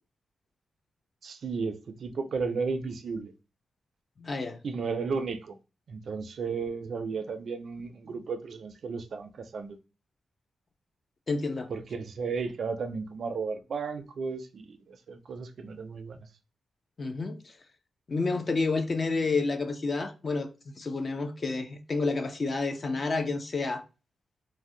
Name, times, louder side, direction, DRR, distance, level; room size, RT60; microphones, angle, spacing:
voice 1, 1.2-3.3 4.6-5.5 5.9-9.8 11.7-16.3, right 5 dB, 55° right, 0.3 m, -34 dB
voice 2, 4.2-4.6 11.3-11.7 15.7-15.8 17.0-17.5 18.1-23.8, left 3 dB, 30° left, 0.3 m, -30 dB
2.5 x 2.0 x 3.6 m
wide cardioid pair, 160°, 0 cm